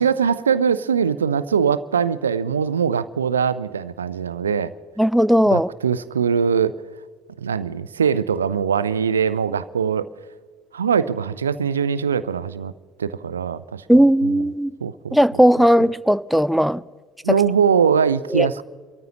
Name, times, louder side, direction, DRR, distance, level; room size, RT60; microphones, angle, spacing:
voice 1, 0.0-4.7 5.5-6.8 7.4-10.1 10.7-12.7 13.0-13.8 14.2-14.4 14.8-15.2 17.2-18.6, right 7 dB, 80° right, 0.4 m, -21 dB
voice 2, 5.0-5.7 13.9-14.7 15.1-16.8 17.3-17.4 18.3-18.5, equal, ahead, 0.4 m, -16 dB
29.0 x 14.0 x 3.0 m
figure-of-eight pair, 60°, 0 cm